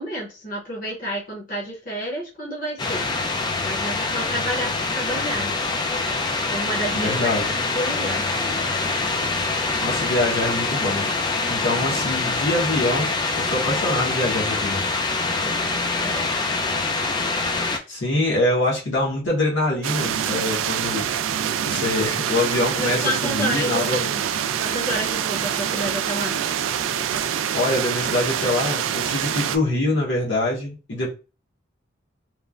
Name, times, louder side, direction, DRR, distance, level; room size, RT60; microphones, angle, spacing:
voice 1, 0.0-3.1 3.6-4.7 4.9-5.5 6.5-8.3 16.0-16.2 22.8-24.3 24.6-26.4, equal, 45° left, 0.8 m, -30 dB
sound 1, 2.8-17.8, left 3 dB, 20° left, 0.3 m, -25 dB
voice 2, 6.9-7.5 9.8-11.1 11.5-14.8 17.9-21.1 21.6-24.1 27.5-31.1, left 2 dB, 70° left, 1.0 m, -24 dB
sound 2, 19.8-29.6, right 9 dB, 85° right, 0.3 m, -25 dB
3.1 x 2.1 x 2.4 m
head